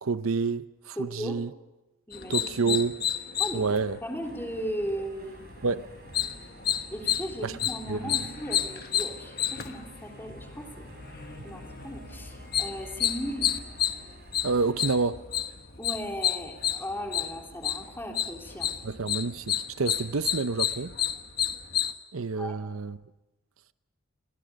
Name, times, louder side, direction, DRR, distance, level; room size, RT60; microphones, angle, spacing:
voice 1, 0.0-1.5 2.3-3.0 3.5-4.0 5.6-5.9 7.4-7.5 7.9-8.2 14.4-15.2 18.8-21.0 22.1-23.0, right 4 dB, 70° right, 0.7 m, -28 dB
voice 2, 1.0-1.4 2.1-2.5 3.4-5.5 6.9-10.7 11.4-13.5 15.8-18.7 22.4-22.5, equal, 10° left, 3.5 m, -37 dB
sound 1, 2.1-21.9, left 10 dB, 45° left, 1.3 m, -31 dB
sound 2, 4.2-15.1, right 1 dB, 45° right, 3.3 m, -50 dB
29.5 x 23.0 x 5.2 m
head